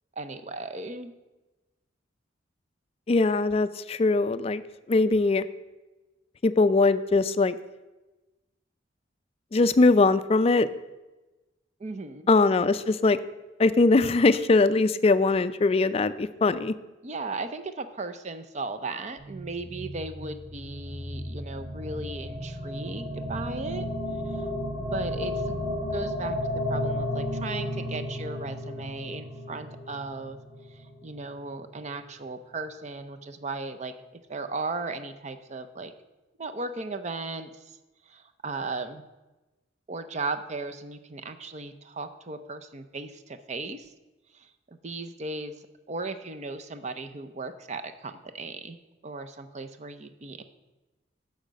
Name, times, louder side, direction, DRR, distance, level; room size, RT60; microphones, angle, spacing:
voice 1, 0.2-1.1 11.8-12.3 17.0-23.8 24.3-24.5 24.8-30.4 30.7-33.9 34.3-35.9 36.4-37.8 38.1-39.0 39.9-43.9 44.3-45.5 45.9-48.8 49.0-50.4, right 3 dB, 35° right, 9 dB, 0.5 m, -36 dB
voice 2, 3.1-4.6 4.9-5.4 6.4-7.6 9.5-10.7 12.3-13.2 13.6-16.7, left 3 dB, 30° left, 13 dB, 0.4 m, -21 dB
sound 1, 19.2-31.4, left 1 dB, 20° right, 1.8 m, -33 dB
10.0 x 6.5 x 5.1 m, 1.1 s
head